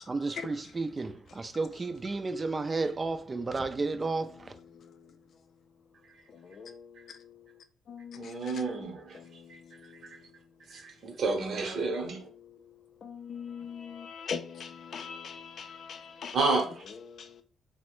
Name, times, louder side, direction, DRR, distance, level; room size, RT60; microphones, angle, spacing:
voice 1, 0.1-4.5, right 3 dB, 30° right, 0.4 m, -32 dB
voice 2, 4.7-5.2 6.3-10.4 11.7-16.4 16.9-17.4, left 6 dB, 55° left, 0.4 m, -43 dB
voice 3, 8.2-9.2 10.7-12.3 16.3-16.8, right 3 dB, 60° right, 0.8 m, -30 dB
3.1 x 2.0 x 3.0 m
cardioid pair, 90°, 0 cm